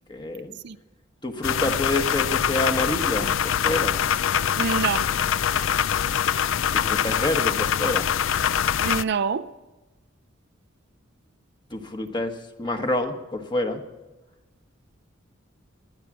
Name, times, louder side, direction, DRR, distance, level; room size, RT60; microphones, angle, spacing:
voice 1, 0.1-0.5 1.2-3.3 3.6-4.0 6.7-8.1 11.7-13.8, left 1 dB, 25° left, 1.3 m, -27 dB
sound 1, 1.4-9.0, left 9 dB, 75° left, 0.4 m, -24 dB
voice 2, 4.6-5.1 8.8-9.5, right 5 dB, 60° right, 0.5 m, -26 dB
21.0 x 10.5 x 6.2 m
head